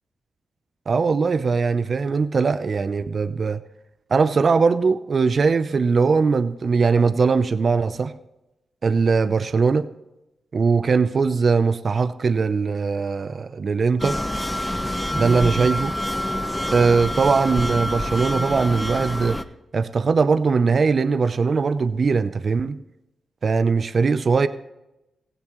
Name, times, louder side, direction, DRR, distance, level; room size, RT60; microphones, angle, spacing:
voice 1, 0.9-3.6 4.1-8.1 8.8-9.9 10.5-14.2 15.2-16.0 16.7-19.4 19.7-22.8 23.4-24.5, right 4 dB, 55° right, 0.7 m, -20 dB
sound 1, 14.0-19.4, left 1 dB, 10° left, 1.0 m, -26 dB
16.5 x 16.0 x 3.1 m
supercardioid pair, 45°, 0 cm